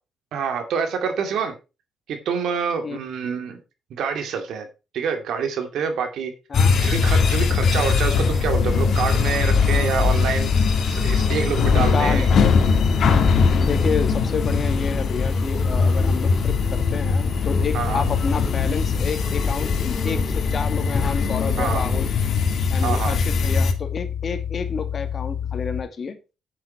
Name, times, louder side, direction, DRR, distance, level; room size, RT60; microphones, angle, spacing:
voice 1, 0.3-1.5 2.1-3.6 3.9-4.7 4.9-6.3 6.8-10.5 10.9-12.3 17.7-18.0 21.6-21.8 22.8-23.2, right 6 dB, 75° right, 2.4 m, -26 dB
sound 1, 6.5-23.7, left 5 dB, 60° left, 2.1 m, -21 dB
voice 2, 11.6-12.3 13.6-22.1 22.7-26.2, left 5 dB, 45° left, 1.9 m, -29 dB
sound 2, 12.7-22.1, left 3 dB, 25° left, 2.5 m, -34 dB
sound 3, 14.3-25.8, left 9 dB, 80° left, 3.2 m, -33 dB
8.8 x 7.5 x 4.4 m
cardioid pair, 90°, 0 cm